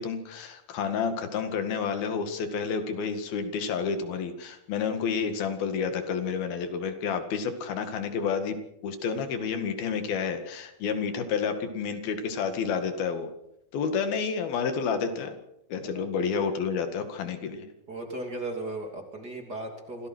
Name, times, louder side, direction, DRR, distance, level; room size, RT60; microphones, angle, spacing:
voice 1, 0.0-8.6 8.8-13.3 13.7-15.4 15.7-17.7, left 6 dB, 85° left, 7 dB, 3.9 m, -30 dB
voice 2, 17.9-20.1, right 2 dB, 30° right, 3 dB, 3.3 m, -36 dB
26.0 x 17.5 x 6.3 m, 0.80 s
omnidirectional pair, 4.2 m